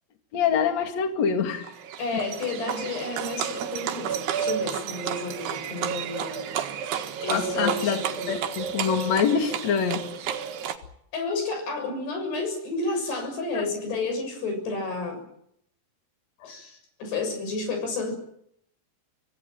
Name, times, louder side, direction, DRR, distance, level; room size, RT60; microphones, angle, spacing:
voice 1, 0.3-1.7 7.3-8.0 8.3-10.1 16.4-16.5, left 7 dB, 45° left, 6 dB, 3.2 m, -25 dB
Livestock farm animals working animals, 1.6-10.8, right 8 dB, 75° right, 3.6 m, -31 dB
voice 2, 2.0-6.4 7.2-8.3 11.1-15.2 16.4-18.1, left 3 dB, 70° left, 6 dB, 8.9 m, -31 dB
26.0 x 17.5 x 9.2 m, 0.72 s
omnidirectional pair, 4.9 m